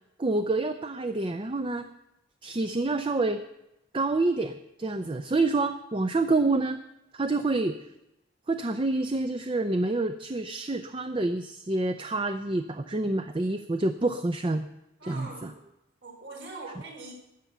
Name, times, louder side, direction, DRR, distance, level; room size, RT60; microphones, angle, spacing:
voice 1, 0.2-1.9 2.4-3.4 3.9-6.8 7.1-7.8 8.5-14.7 15.0-15.5, right 2 dB, 25° right, 8 dB, 0.5 m, -27 dB
voice 2, 15.0-15.5 16.0-17.1, right 2 dB, 70° right, 0 dB, 4.2 m, -42 dB
13.5 x 9.0 x 6.9 m, 0.90 s
head